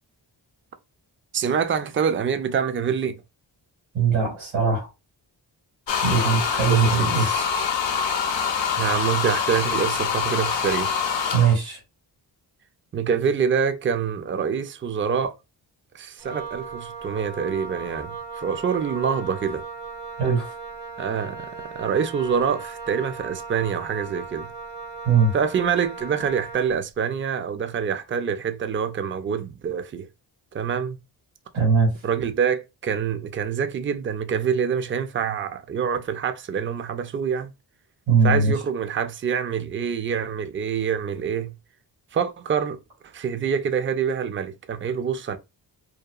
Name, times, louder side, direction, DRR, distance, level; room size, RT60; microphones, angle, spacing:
voice 1, 1.3-3.2 6.7-7.5 8.8-10.9 12.9-15.4 15.9-19.6 21.0-24.5 25.3-30.1 30.5-31.0 32.0-37.5 38.2-41.5 42.1-42.8 43.1-45.4, right 7 dB, 30° right, 0.4 m, -26 dB
voice 2, 3.9-4.9 6.0-7.3 11.3-11.8 20.2-20.5 25.0-25.3 31.5-31.9 38.1-38.5, right 5 dB, 85° right, 1.6 m, -20 dB
sound 1, 5.9-11.6, left 6 dB, 70° left, 0.6 m, -25 dB
Wind instrument woodwind instrument, 16.2-26.8, right 4 dB, 60° right, 0.8 m, -37 dB
2.8 x 2.2 x 2.3 m
cardioid pair, 45°, 46 cm